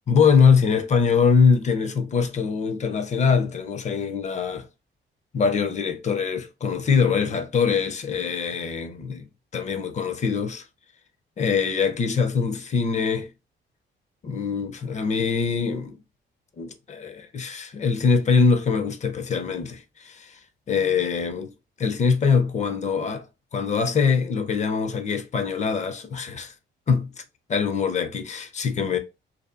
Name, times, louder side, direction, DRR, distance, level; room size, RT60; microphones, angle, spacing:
voice 1, 0.1-4.7 5.3-9.2 9.5-10.6 11.4-13.3 14.2-16.0 16.6-20.4 20.7-21.5 21.8-23.3 23.5-26.5 26.9-27.2 27.5-29.0, left 5 dB, 35° left, 0.4 m, -23 dB
2.7 x 2.3 x 2.3 m
cardioid pair, 120°, 20 cm